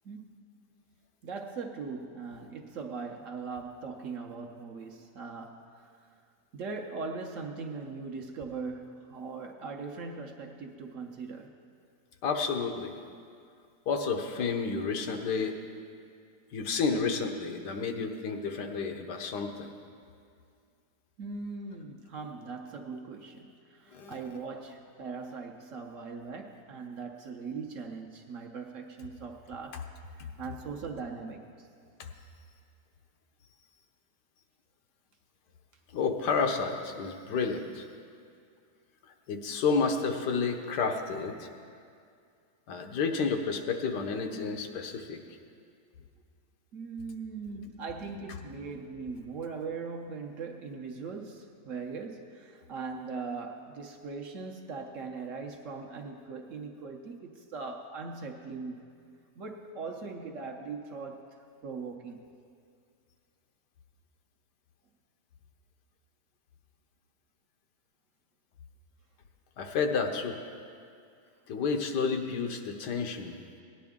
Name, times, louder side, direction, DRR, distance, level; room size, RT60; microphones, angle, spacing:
voice 1, 1.2-5.9 6.5-11.6 21.2-29.8 30.2-31.7 46.7-58.8 59.4-61.3 61.6-62.3, right 4 dB, 60° right, 2 dB, 1.0 m, -40 dB
voice 2, 12.2-12.9 13.9-15.6 16.5-19.7 23.9-24.2 29.7-29.8 32.0-32.1 35.9-37.9 39.1-41.5 42.7-45.2 69.6-70.4 71.5-73.4, left 5 dB, 85° left, 5 dB, 1.5 m, -30 dB
17.5 x 10.0 x 3.6 m, 2.3 s
omnidirectional pair, 1.8 m